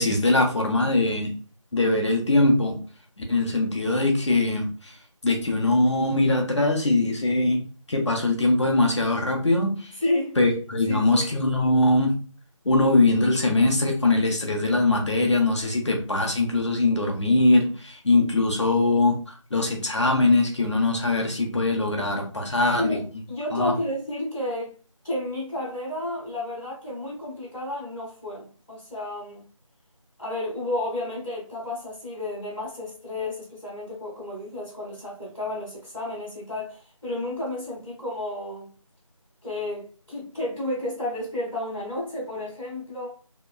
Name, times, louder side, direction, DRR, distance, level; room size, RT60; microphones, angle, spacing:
voice 1, 0.0-1.3 1.7-2.8 3.2-4.9 5.2-7.6 7.9-9.9 10.4-12.2 12.6-19.2 19.5-23.0 23.5-23.7, left 2 dB, 60° left, 0.7 m, -22 dB
voice 2, 10.0-10.4 10.8-11.3 22.8-23.0 23.3-24.7 25.0-29.5 30.2-38.7 39.4-43.1, left 1 dB, 5° right, 0.7 m, -31 dB
2.9 x 2.2 x 2.3 m
figure-of-eight pair, 175°, 17 cm